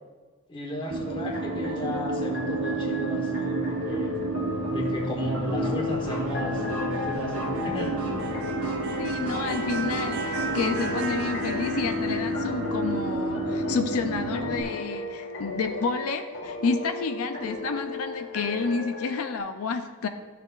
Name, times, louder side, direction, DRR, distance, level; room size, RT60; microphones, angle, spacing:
voice 1, 0.5-4.2 4.7-7.9, left 1 dB, 20° left, 1 dB, 1.1 m, -34 dB
sound 1, 0.9-14.6, right 2 dB, 70° right, 0.8 m, -30 dB
sound 2, 1.0-19.4, left 2 dB, 55° left, 1.4 m, -36 dB
voice 2, 9.0-20.1, left 4 dB, 75° left, 7 dB, 0.4 m, -30 dB
12.5 x 5.7 x 2.4 m, 1.4 s
head